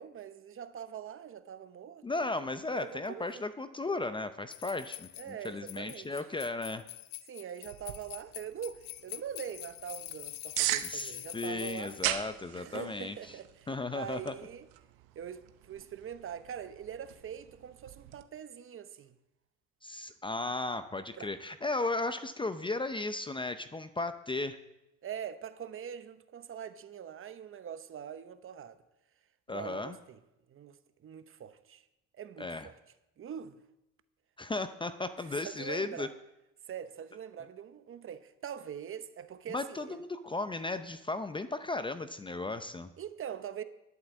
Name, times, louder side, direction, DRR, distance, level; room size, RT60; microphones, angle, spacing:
voice 1, 0.0-2.2 2.7-3.4 5.2-6.2 7.3-12.0 12.6-14.7 15.1-19.1 21.2-21.3 25.0-28.8 29.5-30.2 30.5-31.8 32.1-32.7 33.2-33.6 35.4-36.1 36.7-40.0 43.0-43.6, right 8 dB, 40° right, 0.9 m, -43 dB
voice 2, 2.0-6.8 10.8-13.2 13.7-14.3 19.8-24.6 29.5-30.0 32.4-32.7 34.4-36.1 39.5-42.9, left 2 dB, 15° left, 0.6 m, -35 dB
sound 1, 4.5-12.1, left 18 dB, 70° left, 0.6 m, -45 dB
sound 2, 7.7-18.2, right 15 dB, 90° right, 0.8 m, -40 dB
11.5 x 8.0 x 7.3 m
supercardioid pair, 100°, 33 cm